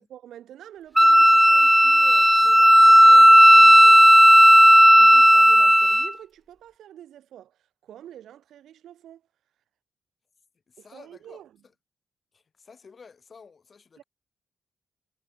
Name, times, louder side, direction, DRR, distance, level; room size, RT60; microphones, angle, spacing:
voice 1, 0.0-4.2 5.0-9.2 10.8-11.5 14.0-14.1, right 11 dB, 75° right, 2.6 m, -47 dB
Wind instrument woodwind instrument, 1.0-6.1, equal, 5° right, 0.4 m, -13 dB
voice 2, 10.7-11.4 12.3-14.0, left 5 dB, 50° left, 7.7 m, -51 dB
hypercardioid pair, 40°, 0 cm